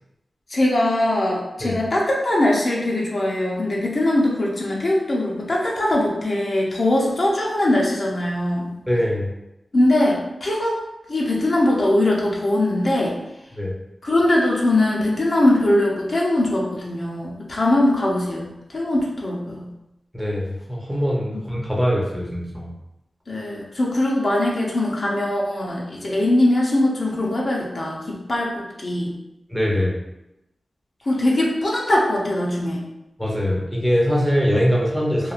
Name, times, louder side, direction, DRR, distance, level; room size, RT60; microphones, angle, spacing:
voice 1, 0.5-8.7 9.7-10.8 11.1-13.1 14.0-19.7 21.3-21.4 23.3-29.2 31.1-32.9, left 1 dB, 55° left, -4 dB, 0.6 m, -21 dB
voice 2, 8.9-9.3 13.5-13.7 20.1-22.7 29.5-29.9 33.2-35.3, equal, ahead, -4 dB, 0.6 m, -22 dB
3.0 x 2.3 x 2.4 m, 0.91 s
wide cardioid pair, 80°, 0 cm